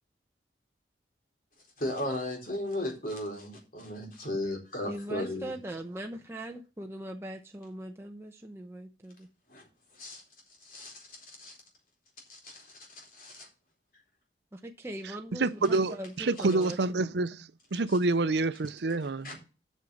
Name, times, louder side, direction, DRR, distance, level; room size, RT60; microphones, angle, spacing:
voice 1, 1.8-5.5 9.5-9.6 9.9-10.2 10.6-10.9 11.4-11.5 12.3-12.8 13.1-13.5 19.2-19.4, left 1 dB, 50° left, 4.2 m, -35 dB
voice 2, 4.9-9.3 14.5-17.1, right 1 dB, 15° right, 0.8 m, -41 dB
voice 3, 15.4-17.4 17.7-19.3, right 3 dB, 65° right, 0.6 m, -27 dB
8.2 x 6.4 x 7.0 m
head